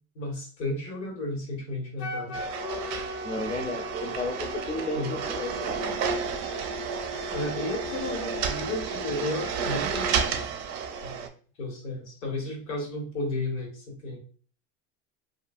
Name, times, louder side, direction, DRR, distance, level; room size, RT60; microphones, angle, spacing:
voice 1, 0.1-2.4 4.9-5.2 7.3-10.2 11.0-11.2 11.6-14.2, left 2 dB, 85° left, 0 dB, 1.4 m, -33 dB
Wind instrument woodwind instrument, 2.0-5.9, left 1 dB, 60° left, 0.6 m, -38 dB
sound 1, 2.3-11.3, right 5 dB, 50° right, 0.6 m, -31 dB
voice 2, 3.2-5.7, left 2 dB, 20° left, 6 dB, 0.3 m, -33 dB
2.6 x 2.6 x 2.4 m, 0.41 s
supercardioid pair, 115°, 34 cm